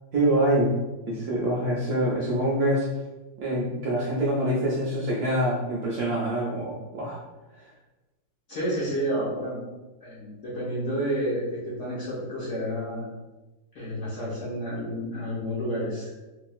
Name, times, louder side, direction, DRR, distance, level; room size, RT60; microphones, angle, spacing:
voice 1, 0.1-0.7 1.1-2.9 3.4-7.2 7.5-7.7, right 1 dB, 70° right, -5 dB, 0.9 m, -25 dB
voice 2, 8.5-9.6 10.0-13.1 13.7-16.1, equal, 70° left, -7 dB, 0.7 m, -30 dB
2.9 x 2.8 x 2.3 m, 1.1 s
omnidirectional pair, 2.1 m